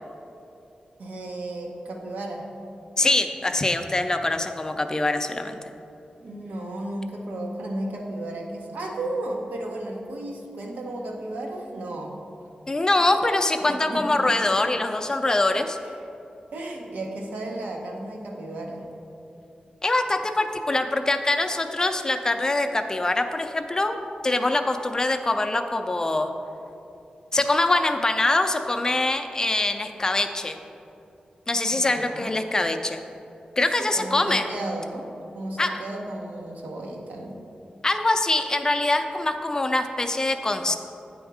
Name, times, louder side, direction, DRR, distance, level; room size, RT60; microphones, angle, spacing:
voice 1, 1.0-2.4 6.2-12.2 13.7-14.5 15.8-16.0 16.5-18.8 31.7-32.3 33.8-35.1 35.3-37.4, right 1 dB, 90° right, 0 dB, 0.9 m, -34 dB
voice 2, 3.0-5.6 12.7-15.8 19.8-24.0 24.2-26.3 27.3-30.6 31.5-33.0 33.6-34.4 35.6-35.8 37.8-40.8, left 2 dB, 25° left, 6 dB, 0.4 m, -23 dB
8.8 x 3.5 x 4.7 m, 2.8 s
wide cardioid pair, 125°, 3 cm